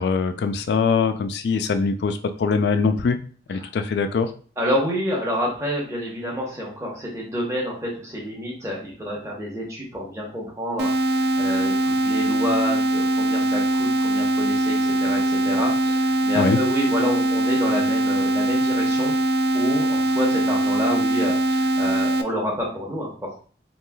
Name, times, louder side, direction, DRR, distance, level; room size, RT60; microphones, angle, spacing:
voice 1, 0.0-3.2 3.5-4.3 16.4-16.6, left 5 dB, 65° left, 9 dB, 0.3 m, -22 dB
voice 2, 4.6-19.1 19.5-23.3, equal, 15° right, -3 dB, 0.9 m, -28 dB
sound 1, 10.8-22.2, right 1 dB, 60° right, 0.3 m, -22 dB
3.1 x 2.8 x 2.3 m, 0.41 s
head